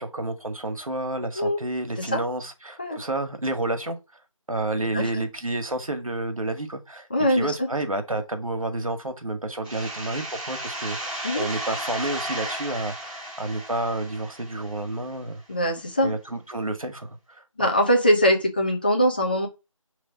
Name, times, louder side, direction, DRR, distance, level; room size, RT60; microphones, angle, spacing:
voice 1, 0.0-4.0 4.5-15.4 16.0-17.7, right 2 dB, 80° right, 1.9 m, -30 dB
voice 2, 4.9-5.2 7.1-7.7 11.2-11.5 15.5-16.1 17.6-19.5, equal, 15° left, 0.7 m, -22 dB
sound 1, 9.6-15.1, right 1 dB, 15° right, 2.7 m, -34 dB
6.1 x 3.5 x 5.9 m
figure-of-eight pair, 165°, 17 cm